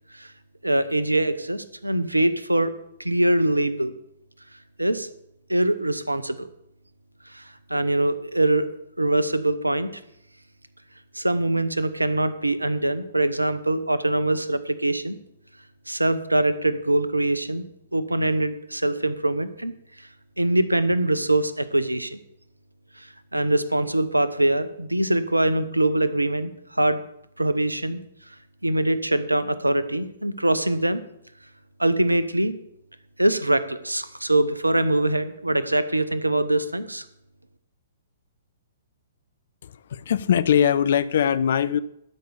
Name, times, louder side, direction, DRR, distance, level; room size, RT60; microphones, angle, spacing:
voice 1, 0.6-2.7 3.0-3.9 4.8-5.1 5.5-6.5 7.3-8.7 9.0-10.0 11.1-15.2 15.9-17.6 17.9-19.7 20.0-20.1 20.4-22.2 23.0-27.0 27.4-28.0 28.6-31.0 31.8-32.5 33.2-37.0, right 1 dB, 90° right, 14 dB, 0.8 m, -23 dB
voice 2, 39.6-41.8, left 8 dB, 55° left, 15 dB, 0.6 m, -21 dB
12.5 x 5.5 x 7.0 m, 0.78 s
figure-of-eight pair, 120°, 0 cm